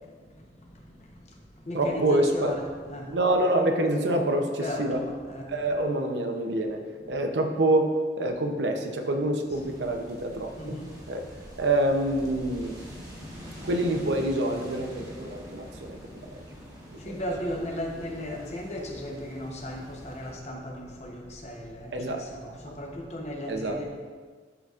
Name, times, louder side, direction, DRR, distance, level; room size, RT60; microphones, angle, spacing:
voice 1, 0.0-3.2 4.6-5.5 7.0-7.1 9.6-9.7 10.6-11.2 12.9-13.3 16.3-23.9, left 1 dB, 40° left, 0 dB, 0.9 m, -37 dB
voice 2, 1.7-2.6 3.1-5.0 5.5-6.8 7.1-10.8 11.1-11.2 11.6-12.8 13.6-16.3 17.1-17.2 21.9-22.2 23.5-23.8, right 1 dB, 85° right, 4 dB, 0.7 m, -26 dB
sound 1, 9.5-20.3, equal, 20° right, 1.2 m, -45 dB
11.5 x 4.0 x 2.4 m, 1.5 s
head